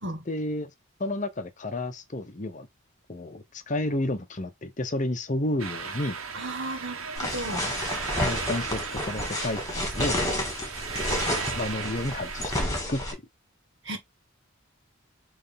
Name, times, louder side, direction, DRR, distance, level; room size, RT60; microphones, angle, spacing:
voice 1, 0.3-0.7 1.0-2.7 3.1-6.2 8.2-10.2 11.6-13.0, left 1 dB, 35° left, 0.8 m, -31 dB
sound 1, 5.6-12.6, right 5 dB, 80° right, 1.5 m, -36 dB
voice 2, 6.3-7.7 13.8-14.0, right 1 dB, 55° right, 2.0 m, -34 dB
sound 2, 7.2-13.1, left 1 dB, 15° left, 2.6 m, -30 dB
8.1 x 3.3 x 3.7 m
head